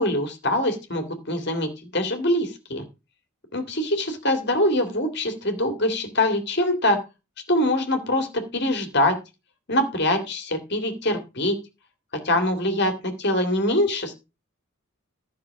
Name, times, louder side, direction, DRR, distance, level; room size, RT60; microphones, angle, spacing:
voice 1, 0.0-2.8 3.5-7.0 7.5-9.2 9.7-11.6 12.1-14.1, left 1 dB, 50° left, 6 dB, 2.4 m, -24 dB
12.5 x 6.3 x 4.7 m, 0.27 s
head